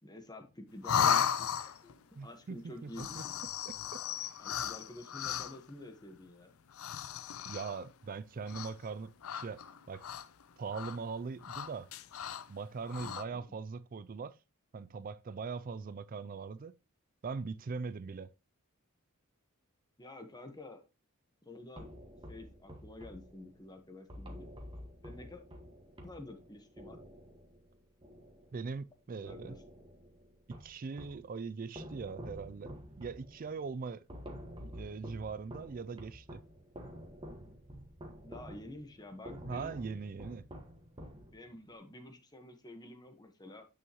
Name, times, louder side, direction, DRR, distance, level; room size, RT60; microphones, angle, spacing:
voice 1, 0.0-1.9 2.2-3.2 4.4-6.5 13.3-13.6 20.0-20.8 21.4-21.9 22.3-24.5 25.0-25.4 26.0-27.0 29.2-29.6 38.2-39.8 41.3-43.7, left 1 dB, 20° left, 1.3 m, -49 dB
sound 1, 0.8-2.0 2.9-5.7 6.7-7.9 8.5-8.9 9.2-10.4 10.7-11.0 11.4-12.5 12.8-13.2, left 8 dB, 85° left, 0.5 m, -35 dB
voice 2, 2.2-3.2 3.7-3.8 7.4-9.6 9.9-10.1 10.6-11.9 12.5-14.4 14.7-16.8 17.2-18.3 28.5-29.6 30.5-34.0 34.6-36.4 39.5-40.4, right 5 dB, 40° right, 0.4 m, -41 dB
sound 2, 21.8-28.9 29.3-31.3 31.7-41.7, equal, 25° right, 1.6 m, -50 dB
9.2 x 6.4 x 3.0 m
head